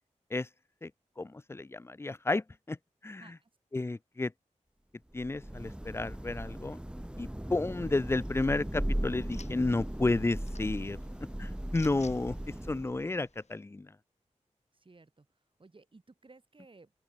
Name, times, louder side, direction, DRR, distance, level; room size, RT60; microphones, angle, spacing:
voice 1, 1.2-2.8 3.0-3.2 3.7-4.3 5.1-6.8 7.2-11.0 11.4-13.9, left 2 dB, 20° left, 0.4 m, -32 dB
voice 2, 3.2-3.5 14.7-16.9, right 3 dB, 45° right, 3.9 m, -58 dB
Thunder / Rain, 5.1-13.1, right 1 dB, 5° right, 1.3 m, -37 dB
sound 1, 8.2-13.6, left 4 dB, 65° left, 5.0 m, -58 dB
open air
wide cardioid pair, 65°, 13 cm